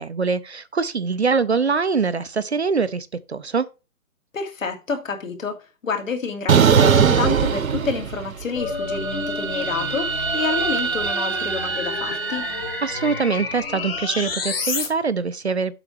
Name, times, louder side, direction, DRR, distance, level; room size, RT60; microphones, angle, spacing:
voice 1, 0.0-3.7 12.8-15.7, right 5 dB, 50° right, 0.5 m, -23 dB
voice 2, 4.3-12.5, left 4 dB, 60° left, 2.4 m, -28 dB
sound 1, 6.5-8.4 8.8-13.1, right 6 dB, 65° right, 1.1 m, -22 dB
sound 2, 8.6-14.9, left 4 dB, 40° left, 2.0 m, -30 dB
7.7 x 5.9 x 4.5 m
hypercardioid pair, 175°, 44 cm